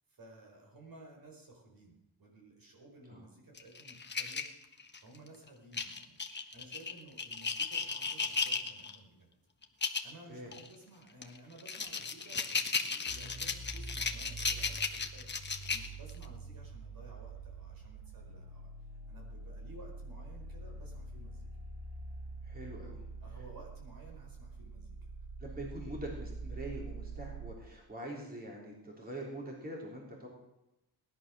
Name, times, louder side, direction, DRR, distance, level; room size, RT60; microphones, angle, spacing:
voice 1, 0.1-4.4 5.0-6.2 6.5-9.3 10.0-18.7 19.1-21.5 22.6-22.9 23.2-25.1, right 1 dB, 55° right, 1 dB, 4.9 m, -55 dB
sound 1, 3.6-5.2 5.7-9.0 9.6-10.1 10.5-10.7 11.2-16.2, left 5 dB, 25° left, 1.2 m, -35 dB
sound 2, 13.1-27.5, right 3 dB, 90° right, 2.9 m, -45 dB
voice 2, 22.4-23.0 25.4-30.3, right 1 dB, 20° right, -2 dB, 3.9 m, -44 dB
18.5 x 11.5 x 6.4 m, 0.92 s
wide cardioid pair, 160°, 41 cm